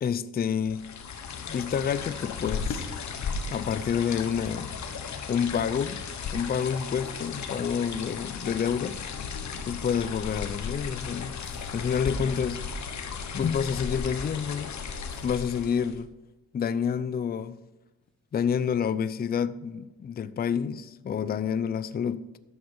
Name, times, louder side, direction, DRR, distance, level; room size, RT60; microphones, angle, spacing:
voice 1, 0.0-0.9 1.5-2.9 3.5-4.7 5.3-6.0 6.3-9.0 9.7-11.4 11.7-12.6 13.3-14.7 15.2-16.1 16.5-17.6 18.3-22.3, left 7 dB, 30° left, 0.5 m, -28 dB
sound 1, 0.7-16.1, left 5 dB, 55° left, 1.4 m, -35 dB
sound 2, 11.4-12.4 15.1-15.9 17.4-17.5 18.0-18.2 18.5-18.6 18.9-19.0, left 1 dB, 5° left, 3.8 m, -60 dB
11.0 x 6.9 x 5.3 m
cardioid pair, 90°, 34 cm